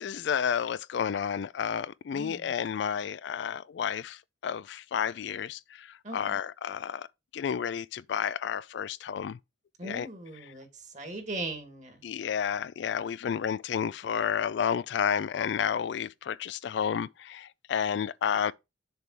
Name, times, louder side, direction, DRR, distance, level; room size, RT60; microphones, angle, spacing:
voice 1, 0.0-7.1 7.3-9.4 9.8-10.1 12.0-18.5, left 7 dB, 65° left, 0.3 m, -31 dB
voice 2, 2.1-2.5 6.0-6.4 9.8-12.1, right 2 dB, 40° right, 2.2 m, -39 dB
6.9 x 3.4 x 6.1 m
head